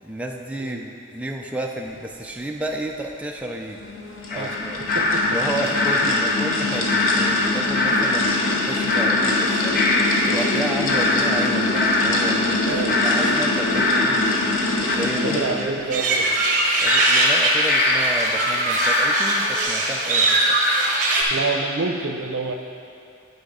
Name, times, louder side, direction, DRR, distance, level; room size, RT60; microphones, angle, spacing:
voice 1, 0.0-3.9 4.3-4.8 5.2-9.9 10.2-16.2 16.8-20.6, right 1 dB, 5° right, 0 dB, 0.4 m, -32 dB
sound 1, 3.7-15.8, left 2 dB, 90° left, 0.9 m, -25 dB
sound 2, 4.3-14.9 16.9-19.6, left 2 dB, 45° left, 0.7 m, -23 dB
voice 2, 4.9-5.3 10.8-11.0 12.7-13.0 14.9-16.3 21.3-22.5, right 3 dB, 75° right, 5 dB, 0.6 m, -28 dB
sound 3, 15.9-21.2, right 2 dB, 40° right, 1.3 m, -21 dB
8.8 x 6.2 x 4.9 m, 2.6 s
head